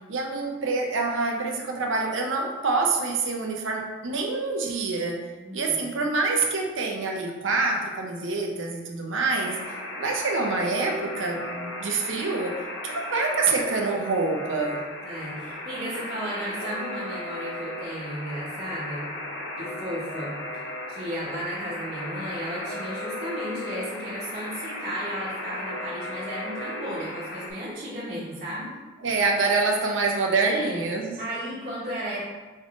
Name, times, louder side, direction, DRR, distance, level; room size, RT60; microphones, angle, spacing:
voice 1, 0.1-5.2 5.5-9.6 10.0-12.6 12.8-14.8 29.0-31.2, right 3 dB, 85° right, 1 dB, 0.8 m, -26 dB
voice 2, 5.4-5.8 15.0-19.1 19.6-20.4 20.9-28.7 30.4-30.8 31.2-32.2, right 1 dB, 45° right, -11 dB, 1.3 m, -34 dB
Alarm, 9.3-27.5, left 1 dB, 75° left, 0.7 m, -36 dB
5.3 x 3.6 x 2.5 m, 1.2 s
head